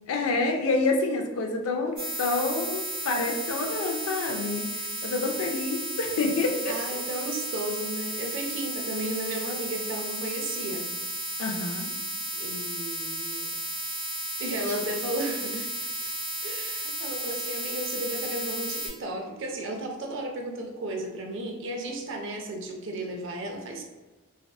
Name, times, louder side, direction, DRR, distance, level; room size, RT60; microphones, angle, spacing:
voice 1, 0.1-7.0 11.4-11.9, left 3 dB, 90° left, 3 dB, 0.4 m, -28 dB
sound 1, 2.0-18.9, right 1 dB, 40° right, 1.0 m, -33 dB
voice 2, 6.7-10.9 12.3-13.5 14.4-16.1 16.4-23.8, right 1 dB, 60° right, 2 dB, 0.4 m, -34 dB
2.5 x 2.3 x 2.2 m, 1.1 s
head